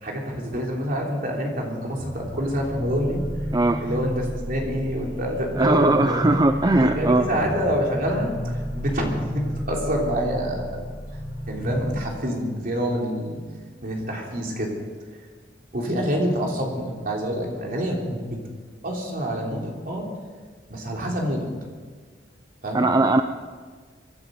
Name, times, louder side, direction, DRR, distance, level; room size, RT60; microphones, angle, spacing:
voice 1, 0.0-3.2 3.8-6.4 6.8-10.9 11.5-13.4 13.8-14.7 15.7-18.4 18.8-20.1 20.7-21.5 22.6-22.9, equal, 50° right, -1 dB, 3.4 m, -27 dB
sound 1, 1.9-12.0, equal, 70° left, 4.3 m, -32 dB
voice 2, 5.5-7.3 22.7-23.2, right 2 dB, 20° right, 8 dB, 0.5 m, -19 dB
25.5 x 10.5 x 5.2 m, 1.5 s
head